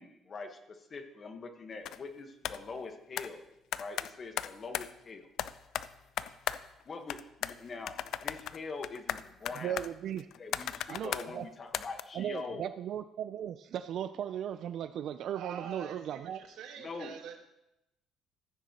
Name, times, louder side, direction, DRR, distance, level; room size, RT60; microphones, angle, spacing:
voice 1, 0.0-3.4 3.8-5.3 6.8-8.0 8.2-9.8 10.3-12.7 16.8-17.2, left 4 dB, 35° left, 6 dB, 1.2 m, -43 dB
sound 1, 1.8-2.0 2.4-2.6 3.2-3.3 3.7-4.9 5.4-6.8 7.1-7.6 7.9-11.3 11.7-12.0, left 11 dB, 70° left, 0.4 m, -36 dB
voice 2, 9.6-10.3 10.9-11.5 12.1-16.4, right 10 dB, 65° right, 11 dB, 0.4 m, -37 dB
voice 3, 15.3-17.4, right 7 dB, 80° right, 4 dB, 1.4 m, -45 dB
14.5 x 9.1 x 2.9 m, 0.87 s
cardioid pair, 115°, 0 cm